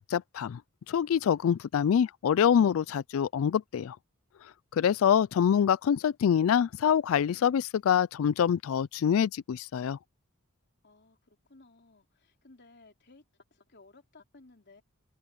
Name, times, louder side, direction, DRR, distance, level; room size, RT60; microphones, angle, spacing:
voice 1, 0.1-0.6 0.9-4.0 4.7-10.0, left 8 dB, 65° left, 0.3 m, -25 dB
voice 2, 10.8-13.2 13.5-14.8, left 3 dB, 50° left, 3.4 m, -57 dB
head